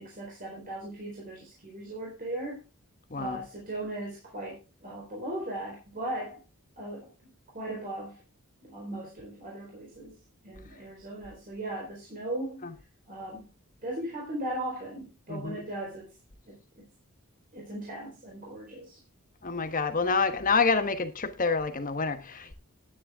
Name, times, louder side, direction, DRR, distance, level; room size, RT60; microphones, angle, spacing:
voice 1, 0.0-2.6 3.2-6.4 6.8-8.2 8.6-12.7 13.1-13.5 13.8-16.1 16.5-16.9 17.5-19.0, right 1 dB, 40° right, 4.2 m, -38 dB
voice 2, 19.4-22.5, left 4 dB, 35° left, 1.2 m, -27 dB
10.0 x 10.0 x 3.5 m
head